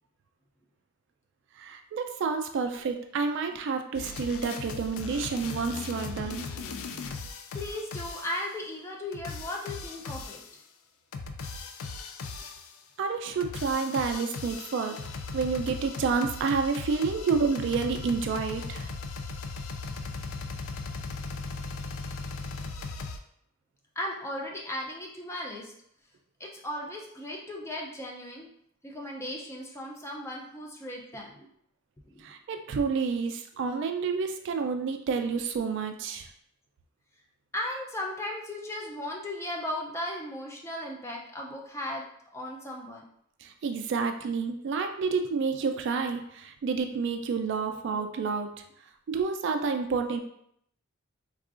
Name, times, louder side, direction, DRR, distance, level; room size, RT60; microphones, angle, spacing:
voice 1, 1.6-6.5 13.0-15.0 15.3-18.9 32.2-36.3 43.4-48.5 49.1-50.2, right 5 dB, 60° right, 6 dB, 0.3 m, -29 dB
sound 1, 3.9-8.5 9.1-10.6 11.1-12.8 13.3-23.2, left 4 dB, 80° left, 0.3 m, -38 dB
voice 2, 7.5-10.4 13.3-13.4 24.0-25.7 26.4-28.5 28.8-31.5 32.1-32.3 37.5-42.0 42.3-43.0 47.6-47.8, left 1 dB, 15° left, -1 dB, 0.4 m, -36 dB
3.6 x 2.4 x 2.4 m, 0.70 s
head